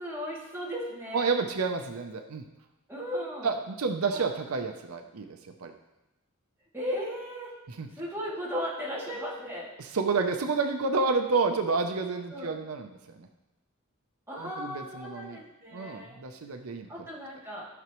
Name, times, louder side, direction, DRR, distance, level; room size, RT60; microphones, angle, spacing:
voice 1, 0.0-1.3 2.9-3.5 4.1-4.2 6.7-7.5 8.0-9.7 12.3-12.5 14.3-16.2 16.9-17.7, equal, 10° right, -7 dB, 2.5 m, -36 dB
voice 2, 1.1-2.4 3.4-5.7 7.7-7.9 9.8-13.3 14.4-15.4 15.7-16.9, right 4 dB, 80° right, 5 dB, 0.6 m, -30 dB
14.5 x 6.0 x 3.1 m, 1.0 s
head